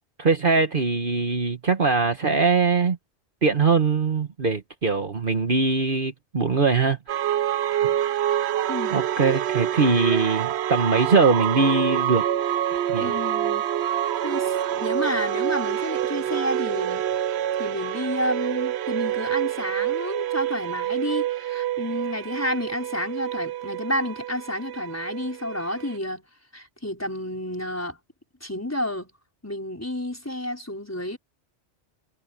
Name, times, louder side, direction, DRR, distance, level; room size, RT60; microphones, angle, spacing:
voice 1, 0.2-3.0 3.4-7.4 8.0-8.1 8.9-12.2 12.9-13.1, right 4 dB, 45° right, 1.4 m, -22 dB
sound 1, 7.1-26.0, right 11 dB, 70° right, 0.8 m, -27 dB
voice 2, 13.0-17.1 17.6-26.3 26.5-28.0 28.4-29.1 29.4-31.2, left 1 dB, 10° left, 4.6 m, -30 dB
omnidirectional pair, 1.2 m